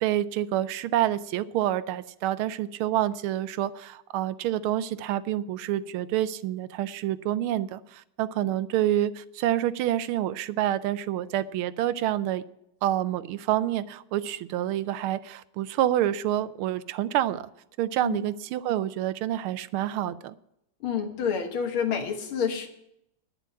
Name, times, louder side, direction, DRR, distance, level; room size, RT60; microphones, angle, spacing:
voice 1, 0.0-12.4 12.8-17.5 17.8-20.3, right 12 dB, 90° right, 15 dB, 1.5 m, -28 dB
voice 2, 20.8-22.7, left 7 dB, 80° left, 4 dB, 2.2 m, -28 dB
10.0 x 7.0 x 8.8 m, 0.79 s
omnidirectional pair, 2.3 m